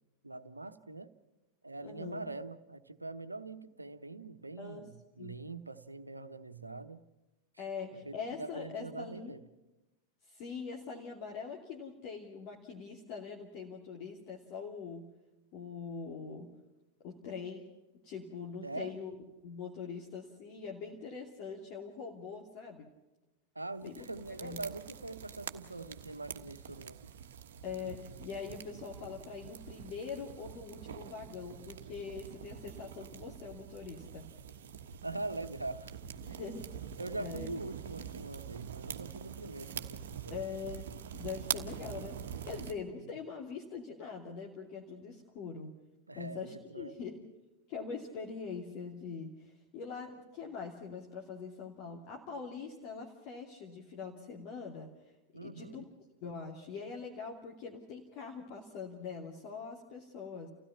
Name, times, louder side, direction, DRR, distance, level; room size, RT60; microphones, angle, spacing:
voice 1, 0.2-1.1 1.6-7.0 7.9-9.4 18.6-18.9 23.5-27.0 35.0-35.9 36.3-36.6 37.0-40.4 42.8-43.0 46.1-47.0 55.3-55.9, right 2 dB, 85° right, 11 dB, 1.1 m, -43 dB
voice 2, 1.8-2.3 4.6-4.9 5.2-5.3 7.6-9.3 10.3-15.1 15.5-16.5 17.0-17.7 18.0-19.2 19.4-22.9 23.8-24.1 24.4-24.6 27.6-34.3 36.2-36.7 37.2-37.5 40.3-45.7 46.1-47.2 47.7-54.9 55.4-55.8 56.2-60.5, left 5 dB, 45° left, 0 dB, 2.7 m, -43 dB
sound 1, 23.8-42.7, right 8 dB, 60° right, 1.3 m, -45 dB
29.5 x 16.5 x 5.9 m, 1.0 s
figure-of-eight pair, 90°, 0 cm